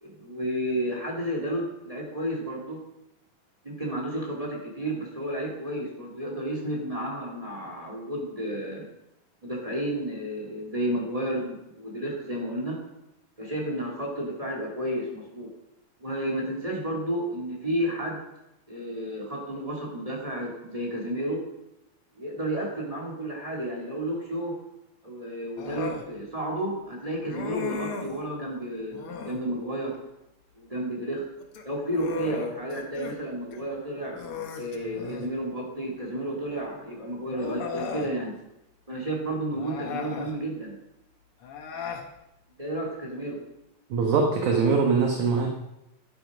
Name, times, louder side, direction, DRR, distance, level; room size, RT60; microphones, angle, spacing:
voice 1, 0.0-2.8 3.6-8.8 9.4-12.8 13.4-15.5 16.0-18.2 18.7-21.4 22.2-24.5 25.0-29.9 30.6-31.3 31.6-34.2 34.5-38.3 38.9-40.8 42.6-43.4, right 1 dB, 10° right, -3 dB, 2.6 m, -31 dB
Human voice, 25.6-26.1 27.3-28.2 28.9-29.5 31.4-33.2 33.5-33.6 34.1-35.4 36.6-36.7 37.3-38.1 39.5-40.4 41.4-42.1, left 5 dB, 65° left, 1.4 m, -36 dB
voice 2, 43.9-45.5, right 5 dB, 60° right, 1 dB, 2.5 m, -22 dB
12.5 x 11.5 x 5.2 m, 0.86 s
omnidirectional pair, 4.4 m